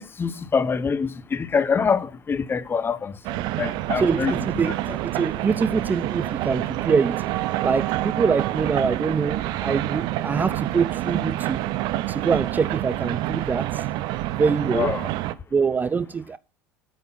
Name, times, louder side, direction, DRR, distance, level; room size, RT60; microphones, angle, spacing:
voice 1, 0.0-3.2 3.5-5.0 14.7-15.1, left 5 dB, 25° left, 1.0 m, -25 dB
sound 1, 3.2-15.3, right 16 dB, 60° right, 0.6 m, -27 dB
voice 2, 4.0-4.7 5.0-7.2 7.6-11.6 12.1-13.8 14.4-14.9 15.5-16.4, right 5 dB, 20° right, 0.4 m, -24 dB
8.6 x 6.3 x 5.7 m
hypercardioid pair, 80°, 8 cm